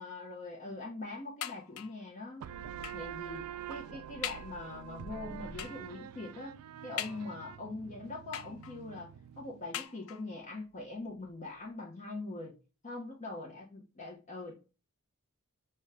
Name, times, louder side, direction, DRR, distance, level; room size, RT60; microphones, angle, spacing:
voice 1, 0.0-2.5 2.9-6.6 6.8-12.6 12.8-14.5, left 2 dB, 35° left, 0.8 m, -42 dB
sound 1, 1.4-2.1 2.8-3.2 3.7-3.8 4.2-4.6 5.6-5.9 7.0-7.6 8.3-8.9 9.7-10.4 11.2-11.3 11.7-11.8, left 10 dB, 65° left, 0.4 m, -42 dB
sound 2, 2.4-9.7, right 9 dB, 85° right, 0.3 m, -46 dB
5.2 x 2.2 x 3.3 m
head